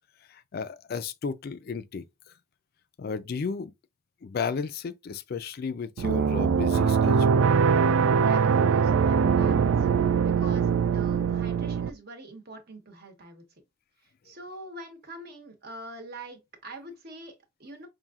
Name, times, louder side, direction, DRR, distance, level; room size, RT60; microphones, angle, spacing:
voice 1, 0.3-2.0 3.0-3.7 4.2-7.4, left 5 dB, 50° left, 0.4 m, -33 dB
sound 1, 6.0-11.9, right 6 dB, 85° right, 0.3 m, -22 dB
voice 2, 8.2-9.9 10.2-13.4 14.2-17.9, right 1 dB, 50° right, 1.1 m, -44 dB
5.5 x 2.6 x 2.4 m
head